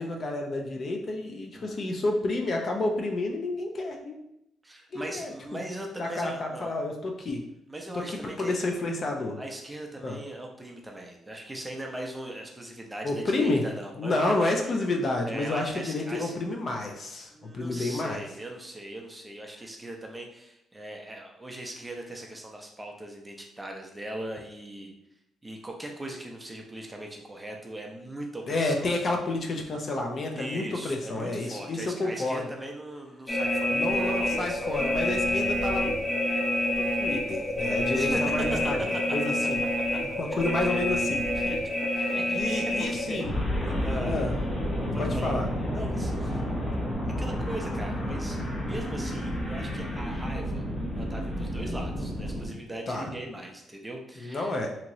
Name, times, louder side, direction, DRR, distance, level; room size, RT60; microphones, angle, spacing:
voice 1, 0.0-4.2 4.9-5.6 6.0-7.4 7.9-9.4 10.0-10.2 13.0-13.6 14.0-18.2 28.5-32.4 33.7-35.9 36.8-39.6 40.2-41.2 42.3-43.3 44.0-44.3 45.0-45.5 52.9-53.0 54.2-54.7, left 2 dB, 45° left, 2 dB, 0.5 m, -30 dB
voice 2, 4.6-6.8 7.7-8.6 9.4-14.5 15.3-16.4 17.3-24.9 25.4-28.9 30.3-35.0 37.9-38.7 39.2-39.3 39.9-40.0 40.3-40.8 41.2-41.6 42.0-43.3 43.8-44.2 44.8-45.5 45.7-46.4 47.2-50.6 50.9-54.5, right 1 dB, 15° right, 1 dB, 0.5 m, -39 dB
sound 1, 33.3-52.5, left 1 dB, 25° left, 0.8 m, -29 dB
2.9 x 2.8 x 2.6 m, 0.83 s
cardioid pair, 90°, 0 cm